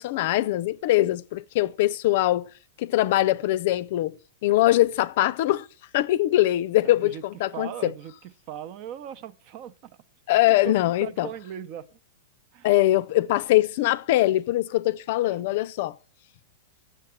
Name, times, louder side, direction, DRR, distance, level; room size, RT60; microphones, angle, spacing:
voice 1, 0.0-2.5 2.8-4.2 4.4-5.7 5.9-7.9 10.3-11.3 12.6-15.9, left 15 dB, 50° left, 0.5 m, -22 dB
voice 2, 6.8-7.2 7.5-10.0 10.5-11.9 12.5-12.7 15.3-15.5, right 9 dB, 40° right, 0.8 m, -39 dB
7.6 x 7.5 x 8.5 m
figure-of-eight pair, 100°, 0 cm